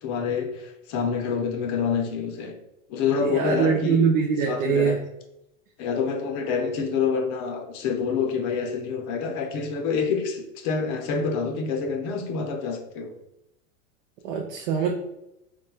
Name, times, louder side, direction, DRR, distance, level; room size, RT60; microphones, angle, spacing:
voice 1, 0.0-2.5 2.9-4.0 4.5-5.0 5.8-13.1, left 5 dB, 40° left, 4 dB, 0.5 m, -27 dB
voice 2, 3.2-5.0 14.2-14.9, right 6 dB, 70° right, 2 dB, 0.6 m, -23 dB
4.2 x 2.2 x 2.3 m, 0.88 s
supercardioid pair, 125°, 41 cm